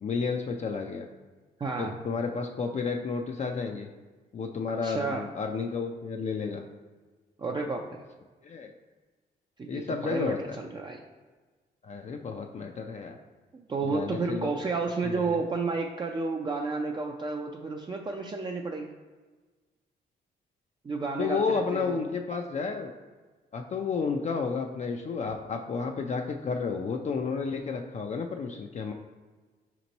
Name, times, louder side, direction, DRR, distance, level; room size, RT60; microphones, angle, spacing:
voice 1, 0.0-1.1 1.8-3.9 4.3-6.6 8.4-8.7 9.7-10.6 11.8-13.2 13.9-14.6 15.0-15.4 21.2-22.9 23.5-28.9, left 5 dB, 40° left, 3 dB, 0.4 m, -31 dB
voice 2, 1.6-1.9 4.8-5.3 7.4-8.0 9.6-11.0 13.7-18.9 20.8-22.0 25.2-25.3, right 4 dB, 25° right, 1 dB, 0.4 m, -31 dB
4.3 x 3.0 x 4.0 m, 1.4 s
cardioid pair, 70°, 18 cm